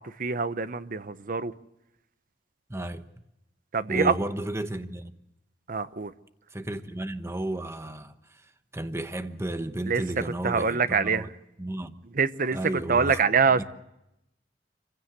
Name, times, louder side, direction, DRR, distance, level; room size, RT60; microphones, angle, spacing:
voice 1, 0.0-1.5 3.7-4.1 5.7-6.1 9.9-10.0 10.4-11.3 12.1-13.6, right 5 dB, 50° right, 0.9 m, -25 dB
voice 2, 2.7-3.1 3.9-5.1 6.5-11.3 11.6-12.0 12.5-13.2 13.6-13.7, right 1 dB, 15° right, 1.0 m, -33 dB
26.0 x 16.0 x 8.0 m
head